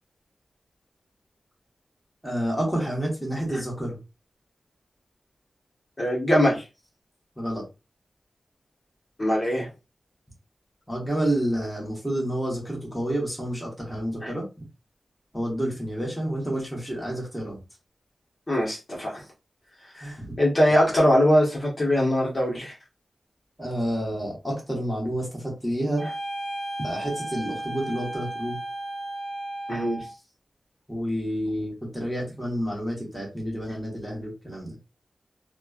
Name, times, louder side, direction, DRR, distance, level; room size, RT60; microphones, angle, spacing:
voice 1, 2.2-4.0 7.4-7.6 10.9-14.4 15.3-17.6 19.9-20.3 23.6-26.0 26.8-28.6 30.9-34.8, right 1 dB, ahead, -4 dB, 1.2 m, -29 dB
voice 2, 6.0-6.6 9.2-9.7 14.2-14.3 18.5-19.2 20.4-22.7 29.7-30.1, equal, 35° left, -4 dB, 1.1 m, -22 dB
sound 1, 26.0-30.2, right 1 dB, 55° left, 1.0 m, -34 dB
3.2 x 2.2 x 2.3 m, 0.28 s
wide cardioid pair, 95°, 0 cm